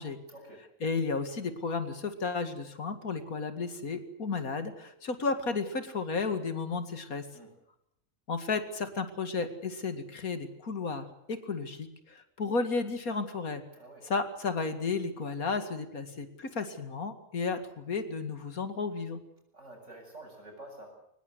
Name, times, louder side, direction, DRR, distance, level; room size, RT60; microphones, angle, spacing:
voice 1, 0.3-0.7 7.3-7.5 13.7-14.1 19.5-21.0, right 1 dB, 55° right, 2 dB, 8.2 m, -49 dB
voice 2, 0.8-7.3 8.3-13.6 14.0-19.2, left 4 dB, 80° left, 9 dB, 2.6 m, -33 dB
23.5 x 20.5 x 8.0 m, 0.77 s
omnidirectional pair, 1.5 m